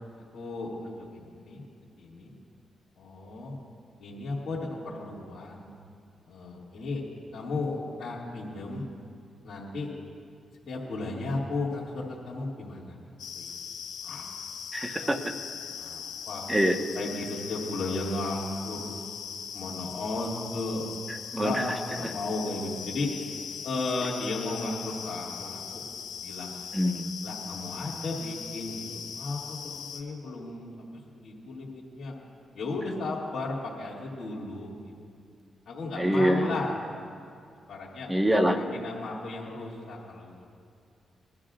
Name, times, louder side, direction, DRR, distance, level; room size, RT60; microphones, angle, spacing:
voice 1, 0.3-1.6 2.0-2.3 3.0-3.5 4.0-5.7 6.3-7.0 7.3-8.8 9.4-9.9 10.7-13.0 13.3-13.5 14.0-14.2 15.0-15.1 15.8-16.5 16.9-18.9 19.5-20.9 21.4-23.1 23.6-25.8 26.2-26.5 27.2-29.4 29.9-30.9 31.2-32.1 32.5-34.9 35.7-36.8 37.7-38.1 38.5-40.5, left 2 dB, 65° left, -7 dB, 2.5 m, -34 dB
sound 1, 13.2-30.0, left 7 dB, 80° left, 1.4 m, -40 dB
voice 2, 14.7-15.3 16.5-16.8 21.1-21.6 26.7-27.1 36.0-36.5 38.1-38.6, equal, 15° right, 4 dB, 1.3 m, -25 dB
22.5 x 12.5 x 2.5 m, 2.3 s
supercardioid pair, 55°, 0 cm